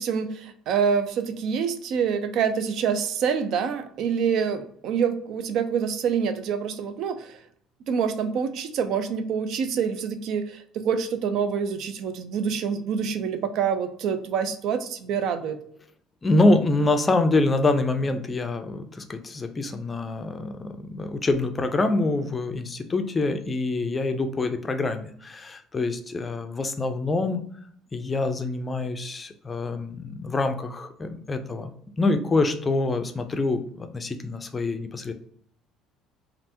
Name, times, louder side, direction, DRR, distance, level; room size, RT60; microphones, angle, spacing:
voice 1, 0.0-7.4 7.9-15.6, right 7 dB, 65° right, 9 dB, 0.4 m, -26 dB
voice 2, 16.2-27.4 27.9-35.1, left 2 dB, 25° left, 8 dB, 0.4 m, -25 dB
3.3 x 2.4 x 2.7 m, 0.64 s
supercardioid pair, 100°, 0 cm